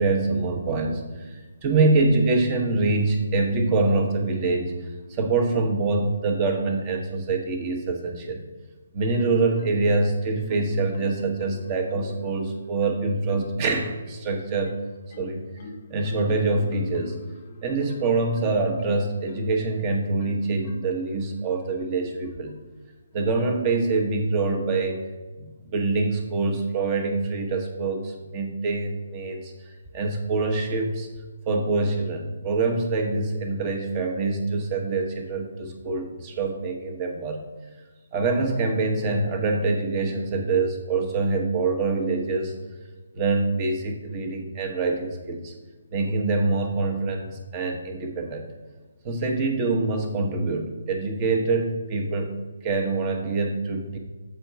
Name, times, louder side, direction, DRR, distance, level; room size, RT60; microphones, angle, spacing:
voice 1, 0.0-8.4 8.9-14.7 15.2-17.2 17.6-22.6 23.1-25.0 25.4-31.1 31.5-37.4 38.1-42.6 43.1-45.5 45.9-48.5 49.0-52.3 52.6-54.0, right 3 dB, 30° right, 3 dB, 1.1 m, -25 dB
Marimba xylophone, 9.1-10.1 10.5-12.3 12.8-13.7 14.2-19.7 20.2-21.1 21.6-21.9, left 5 dB, 45° left, 0.7 m, -43 dB
7.4 x 4.6 x 5.7 m, 1.3 s
figure-of-eight pair, 140°, 0 cm